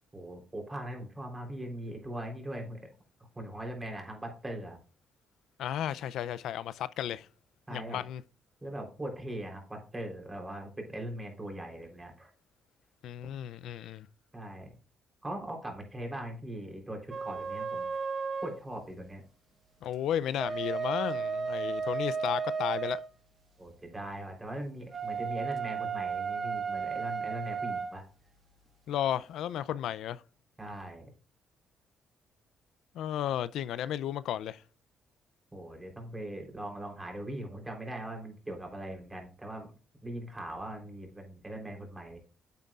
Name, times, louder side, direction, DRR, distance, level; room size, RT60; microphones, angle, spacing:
voice 1, 0.1-2.8 3.3-4.8 7.7-8.0 8.6-12.3 14.3-14.7 15.2-17.9 18.4-19.2 23.6-28.0 30.6-31.1 35.5-39.7 40.0-42.2, right 1 dB, 20° right, 3.5 m, -40 dB
voice 2, 5.6-7.3 7.7-8.2 13.0-14.1 19.8-23.0 28.9-30.2 32.9-34.6, left 11 dB, 80° left, 0.4 m, -33 dB
sound 1, 17.1-18.6 20.2-23.1 24.9-27.9, right 5 dB, 35° right, 1.2 m, -34 dB
9.3 x 7.5 x 2.4 m
cardioid pair, 90°, 0 cm